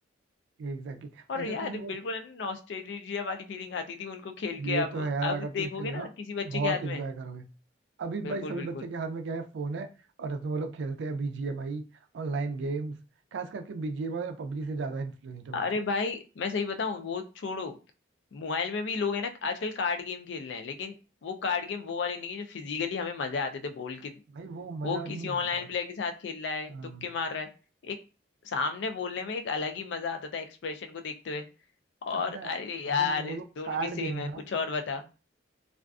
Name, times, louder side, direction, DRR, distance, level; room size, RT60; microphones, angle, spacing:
voice 1, 0.6-1.9 4.6-6.1 6.4-7.5 8.0-9.9 10.2-11.8 12.1-13.0 13.3-15.6 24.3-25.7 26.7-27.0 32.1-32.5 32.9-34.4, right 3 dB, 75° right, 0.4 m, -34 dB
voice 2, 1.3-7.0 8.2-8.8 15.5-17.8 18.3-20.9 21.2-24.1 24.8-26.7 27.0-27.5 27.8-28.0 28.4-31.4 32.1-35.0, left 5 dB, 75° left, 0.4 m, -33 dB
2.4 x 2.3 x 2.3 m
head